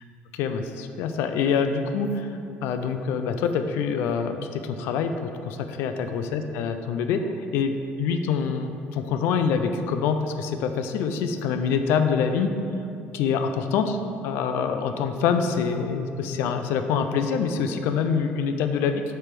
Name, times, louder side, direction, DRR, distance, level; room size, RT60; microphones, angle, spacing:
voice 1, 0.3-2.3 2.6-7.3 7.5-12.6 13.1-14.0 14.2-19.0, left 6 dB, 75° left, 7 dB, 0.5 m, -25 dB
7.8 x 3.4 x 5.9 m, 2.6 s
cardioid pair, 160°, 4 cm